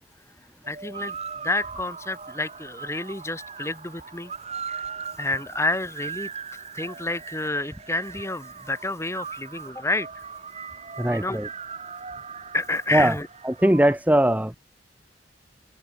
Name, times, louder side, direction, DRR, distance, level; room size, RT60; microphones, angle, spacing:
sound 1, 0.6-13.9, right 6 dB, 35° right, 7.8 m, -39 dB
voice 1, 0.7-1.2 1.4-4.3 4.7-4.8 5.2-6.3 6.7-10.2 11.1-11.4 12.5-13.3, left 2 dB, 15° left, 2.4 m, -29 dB
voice 2, 11.0-11.5 12.9-13.1 13.4-14.6, right 1 dB, 10° right, 1.2 m, -20 dB
head